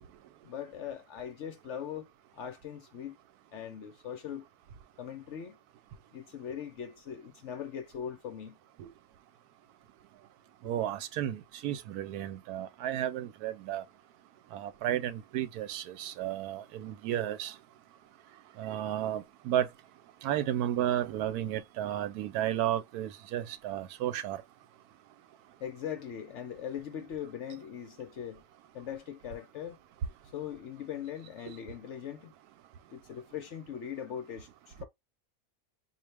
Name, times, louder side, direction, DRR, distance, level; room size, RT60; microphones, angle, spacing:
voice 1, 0.4-3.2 3.5-4.5 5.0-5.6 6.1-8.6 25.6-28.4 28.7-29.8 30.3-32.3 32.9-34.8, left 9 dB, 65° left, 0.8 m, -40 dB
voice 2, 10.6-13.8 14.5-17.5 18.6-19.7 20.2-24.4, right 11 dB, 90° right, 1.1 m, -33 dB
4.0 x 2.5 x 3.3 m
omnidirectional pair, 1.6 m